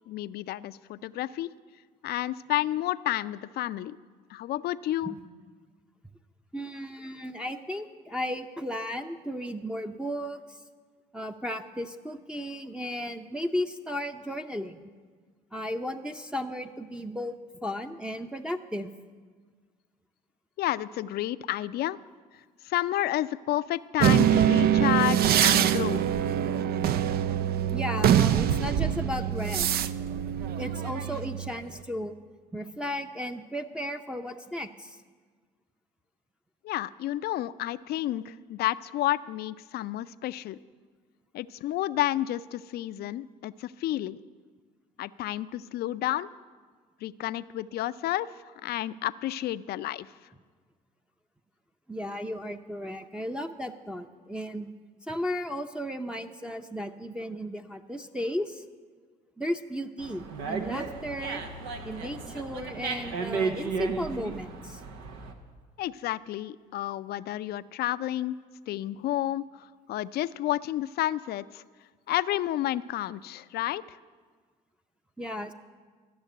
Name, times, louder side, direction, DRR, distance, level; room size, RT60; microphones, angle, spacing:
voice 1, 0.1-1.5 2.0-4.0 4.3-5.1 20.6-22.0 22.6-26.0 36.6-40.6 41.3-44.2 45.0-46.3 47.0-48.3 48.6-50.1 65.8-68.4 68.7-71.6 72.1-74.0, left 14 dB, 60° left, 15 dB, 0.5 m, -30 dB
voice 2, 6.5-10.6 11.1-14.9 15.5-17.3 17.6-18.9 27.7-29.8 30.6-32.2 32.5-35.0 51.9-54.7 55.1-58.6 59.4-61.4 61.8-64.8 75.2-75.5, equal, 5° right, 2 dB, 0.7 m, -35 dB
sound 1, 24.0-31.5, right 10 dB, 60° right, 0.5 m, -24 dB
Dog, 60.0-65.3, right 5 dB, 80° right, 1.1 m, -34 dB
13.5 x 6.6 x 9.1 m, 1.5 s
hypercardioid pair, 65°, 18 cm